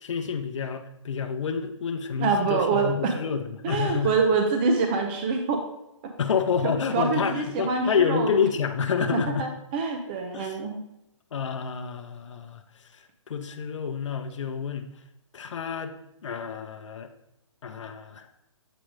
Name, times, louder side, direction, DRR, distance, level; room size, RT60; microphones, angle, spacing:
voice 1, 0.0-4.1 6.2-9.5 10.3-10.5 11.3-12.6 13.3-14.9 15.3-15.9 16.2-17.1 17.6-18.3, left 6 dB, 65° left, 6 dB, 0.6 m, -28 dB
voice 2, 2.2-3.1 3.6-5.6 6.0-6.1 6.6-8.4 9.1-10.8, right 4 dB, 20° right, 4 dB, 0.4 m, -25 dB
7.6 x 4.9 x 3.2 m, 0.85 s
hypercardioid pair, 155°, 16 cm